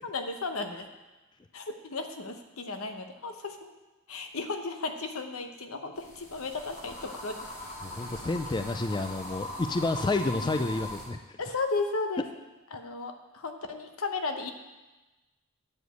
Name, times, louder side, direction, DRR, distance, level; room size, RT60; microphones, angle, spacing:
voice 1, 0.0-0.9 1.5-3.7 4.1-7.4 11.4-12.2 12.7-14.5, left 3 dB, 70° left, 6 dB, 0.9 m, -34 dB
sound 1, 6.0-11.1, left 1 dB, 40° left, 3.7 m, -40 dB
voice 2, 7.8-11.2, left 2 dB, 20° left, 7 dB, 0.3 m, -30 dB
9.7 x 5.0 x 8.0 m, 1.1 s
head